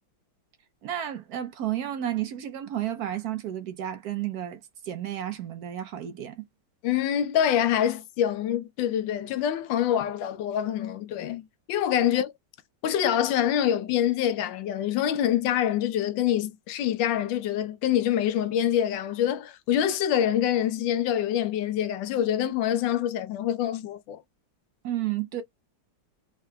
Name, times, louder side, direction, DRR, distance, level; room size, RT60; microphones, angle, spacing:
voice 1, 0.8-6.4 24.8-25.4, right 12 dB, 65° right, 1.0 m, -32 dB
voice 2, 6.8-12.3 12.8-24.2, left 10 dB, 85° left, 1.3 m, -25 dB
3.7 x 3.4 x 2.2 m
omnidirectional pair, 2.0 m